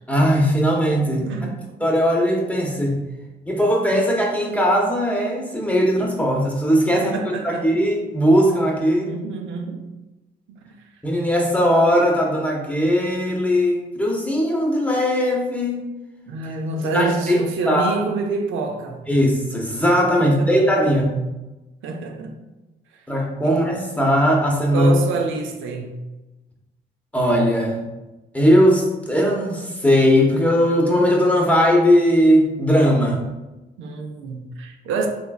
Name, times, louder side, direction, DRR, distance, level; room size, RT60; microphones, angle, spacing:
voice 1, 0.1-1.3 1.8-3.0 3.5-9.1 11.0-15.8 16.9-17.4 17.7-18.0 19.1-21.2 23.1-24.9 27.1-27.8 28.3-33.2, equal, 5° left, 0.7 m, -19 dB
voice 2, 1.0-1.7 6.9-7.7 9.1-9.9 16.3-19.0 20.2-20.5 21.8-22.4 23.4-23.6 24.7-26.0 33.8-35.1, right 4 dB, 85° right, 0.5 m, -27 dB
3.5 x 3.1 x 2.3 m
cardioid pair, 90°, 20 cm